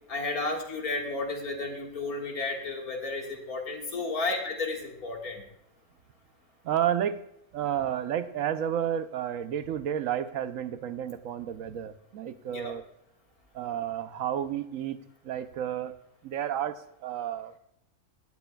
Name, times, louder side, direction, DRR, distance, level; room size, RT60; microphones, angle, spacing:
voice 1, 0.1-5.4 12.5-12.7, left 3 dB, 85° left, 0 dB, 2.3 m, -32 dB
voice 2, 6.6-7.2 7.5-12.8 13.5-15.0 15.2-15.9 16.2-17.6, right 10 dB, 70° right, 11 dB, 1.0 m, -31 dB
17.5 x 9.4 x 2.3 m, 0.77 s
omnidirectional pair, 1.5 m